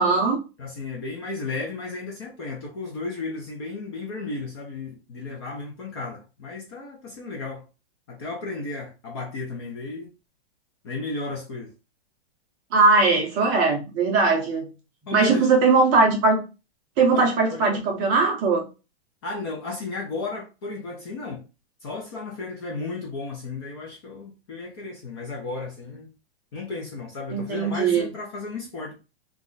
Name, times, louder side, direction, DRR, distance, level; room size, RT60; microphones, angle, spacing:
voice 1, 0.0-0.4 12.7-14.7 15.1-16.4 17.0-18.6 27.3-28.1, right 3 dB, 20° right, 0.6 m, -20 dB
voice 2, 0.6-7.6 8.1-10.1 10.8-11.7 15.1-15.5 17.1-17.8 19.2-21.4 21.8-26.1 26.5-28.9, left 3 dB, 25° left, 0.4 m, -34 dB
2.3 x 2.0 x 3.7 m
hypercardioid pair, 160°, 32 cm